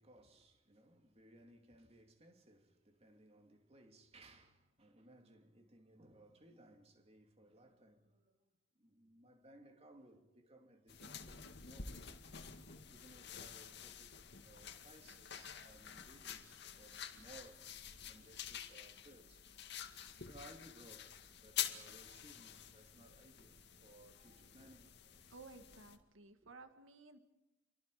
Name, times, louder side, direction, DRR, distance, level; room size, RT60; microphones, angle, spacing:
voice 1, 0.0-8.4 8.7-12.4 12.9-17.7 18.0-19.5 20.2-25.1 26.4-26.5, right 1 dB, 30° right, 3.0 m, -62 dB
sound 1, 10.9-26.0, left 9 dB, 55° left, 2.1 m, -48 dB
voice 2, 25.3-27.2, right 3 dB, 80° right, 1.9 m, -56 dB
30.0 x 24.5 x 5.1 m
head